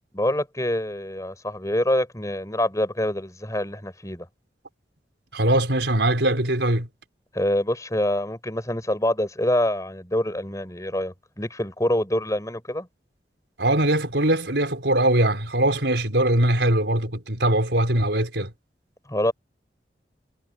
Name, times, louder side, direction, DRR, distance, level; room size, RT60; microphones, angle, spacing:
voice 1, 0.1-4.3 7.3-12.9 19.1-19.3, left 1 dB, 20° left, 6.1 m, -25 dB
voice 2, 5.3-6.9 13.6-18.5, right 1 dB, 85° right, 4.6 m, -21 dB
head